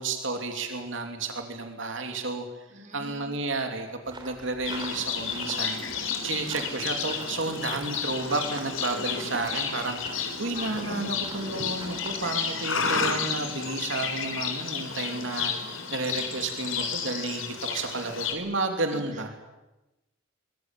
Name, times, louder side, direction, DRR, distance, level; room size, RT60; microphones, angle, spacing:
voice 1, 0.0-2.5 2.9-19.3, right 3 dB, 65° right, 4 dB, 3.1 m, -32 dB
voice 2, 2.7-3.3 9.1-9.2 10.5-10.9 18.9-19.0, right 2 dB, 40° right, 5 dB, 3.7 m, -44 dB
sound 1, 4.1-12.2, right 3 dB, 25° right, 3.9 m, -45 dB
Livestock farm animals working animals, 4.6-18.3, left 6 dB, 85° left, 4.1 m, -32 dB
24.0 x 23.0 x 9.2 m, 1.0 s
head